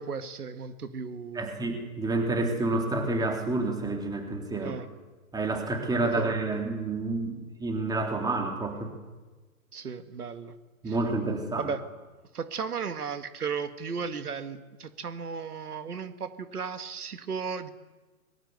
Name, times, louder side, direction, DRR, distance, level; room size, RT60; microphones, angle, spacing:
voice 1, 0.0-1.5 4.6-4.9 6.0-6.3 9.7-10.6 10.9-11.0 11.6-11.9 12.3-17.7, right 5 dB, 80° right, 10 dB, 2.1 m, -35 dB
voice 2, 1.4-4.7 5.3-8.9 10.8-11.7, right 2 dB, 10° right, 4 dB, 3.6 m, -29 dB
25.0 x 22.5 x 8.2 m, 1.2 s
hypercardioid pair, 130°, 45 cm